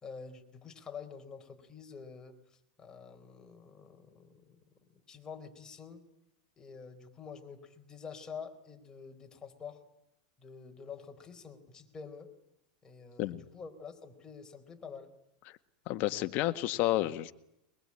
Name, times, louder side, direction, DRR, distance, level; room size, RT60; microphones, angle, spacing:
voice 1, 0.0-4.6 5.1-6.0 6.6-9.8 10.4-12.3 12.8-15.1, left 6 dB, 15° left, 4 dB, 4.4 m, -47 dB
voice 2, 15.9-17.3, left 15 dB, 45° left, 10 dB, 1.7 m, -30 dB
22.5 x 22.0 x 10.0 m, 0.82 s
supercardioid pair, 135°, 4 cm